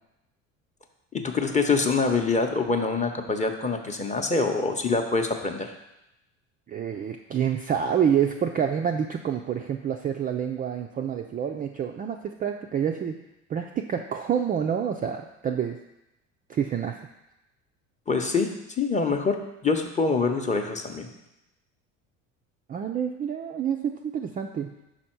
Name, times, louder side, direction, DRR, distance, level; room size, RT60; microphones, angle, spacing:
voice 1, 1.1-5.7 18.1-18.5 18.8-21.1, left 4 dB, 20° left, 4 dB, 0.8 m, -25 dB
voice 2, 6.7-13.2 13.5-15.8 16.5-17.0 22.7-24.7, right 8 dB, 25° right, 3 dB, 0.4 m, -27 dB
5.7 x 4.2 x 4.4 m, 0.91 s
hypercardioid pair, 65°, 39 cm